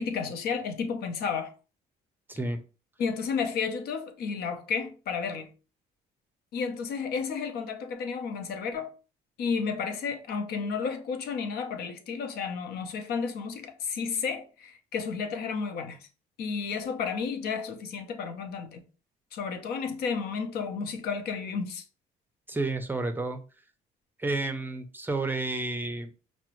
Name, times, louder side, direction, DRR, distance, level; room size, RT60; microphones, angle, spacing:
voice 1, 0.0-1.5 3.0-5.5 6.5-8.9 9.4-16.1 16.4-18.8 19.3-21.8, left 5 dB, 70° left, 0.7 m, -32 dB
voice 2, 2.3-2.6 22.5-23.4 24.2-26.1, right 2 dB, 10° right, 0.5 m, -30 dB
5.8 x 2.1 x 3.0 m
cardioid pair, 110°, 17 cm